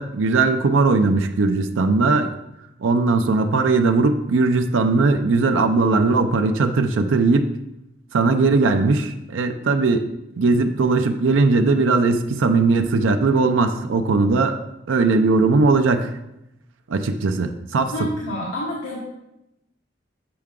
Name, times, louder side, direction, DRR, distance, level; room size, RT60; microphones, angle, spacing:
voice 1, 0.0-2.3 2.8-7.5 8.1-10.1 10.4-14.6 14.9-16.2 16.9-18.1, right 3 dB, 90° right, 7 dB, 0.5 m, -19 dB
voice 2, 17.9-19.0, equal, 85° left, -5 dB, 1.4 m, -28 dB
7.7 x 4.7 x 3.6 m, 0.88 s
head